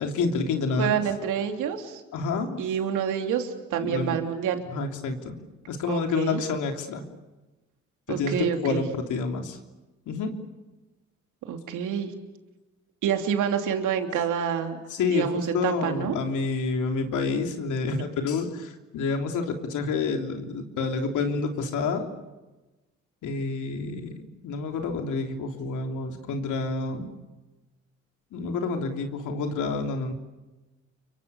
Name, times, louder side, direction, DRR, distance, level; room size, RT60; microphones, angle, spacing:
voice 1, 0.0-1.0 2.1-2.6 3.8-4.2 4.7-7.0 8.1-9.6 10.1-10.3 14.9-22.1 23.2-24.1 24.4-27.1 28.3-30.1, left 4 dB, 80° left, 4 dB, 3.3 m, -28 dB
voice 2, 0.8-2.0 2.6-4.6 5.9-6.4 8.1-8.8 11.5-12.1 13.0-14.8 15.1-16.2, right 8 dB, 90° right, 5 dB, 3.1 m, -27 dB
29.5 x 24.0 x 7.1 m, 1.1 s
cardioid pair, 90°, 30 cm